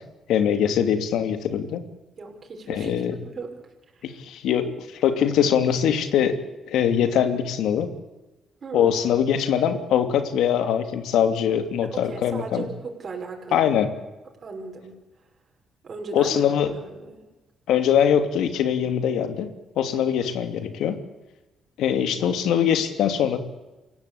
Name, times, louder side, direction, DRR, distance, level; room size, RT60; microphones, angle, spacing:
voice 1, 0.3-1.8 2.7-3.1 4.0-6.4 6.7-7.9 8.7-12.6 13.5-13.9 16.1-16.7 17.7-19.5 19.8-21.0 21.8-23.4, left 9 dB, 85° left, 8 dB, 2.7 m, -22 dB
voice 2, 2.2-4.1 8.6-8.9 11.8-13.7 14.4-14.9 15.8-16.4 16.7-17.2, right 4 dB, 45° right, 1 dB, 5.9 m, -37 dB
28.0 x 16.0 x 8.6 m, 1.1 s
cardioid pair, 90°, 0 cm